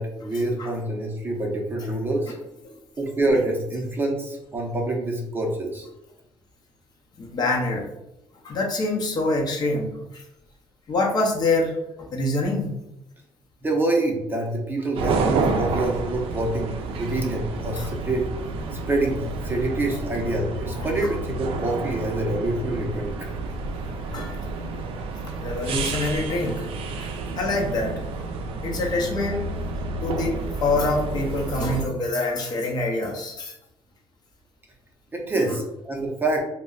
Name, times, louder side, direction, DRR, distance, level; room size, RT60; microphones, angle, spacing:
voice 1, 0.0-2.3 3.0-5.9 13.6-18.3 18.7-23.1 35.1-36.4, right 2 dB, 20° right, 0 dB, 0.6 m, -26 dB
voice 2, 7.2-7.9 8.4-10.2 10.9-12.7 17.8-17.9 20.8-21.2 24.0-24.4 25.2-26.7 27.0-27.9 28.6-29.5 30.0-33.5 35.3-35.6, left 2 dB, 45° left, 0 dB, 0.7 m, -26 dB
sound 1, 15.0-31.9, right 3 dB, 70° right, 0.4 m, -30 dB
2.2 x 2.1 x 3.7 m, 0.85 s
cardioid pair, 110°, 10 cm